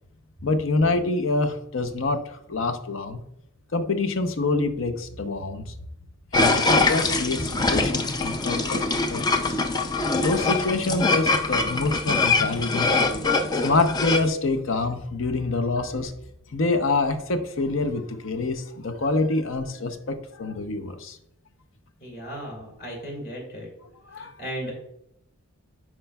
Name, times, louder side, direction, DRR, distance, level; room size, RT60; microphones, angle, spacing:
voice 1, 0.4-3.2 3.7-5.7 6.3-8.8 9.1-9.6 10.2-12.9 13.6-16.1 16.5-21.2 24.1-24.3, left 3 dB, 60° left, 8 dB, 0.6 m, -26 dB
sound 1, 6.3-14.3, left 3 dB, 20° left, 0.4 m, -23 dB
voice 2, 22.0-23.7 24.2-24.7, equal, 45° left, -1 dB, 2.5 m, -36 dB
9.7 x 4.4 x 2.3 m, 0.78 s
head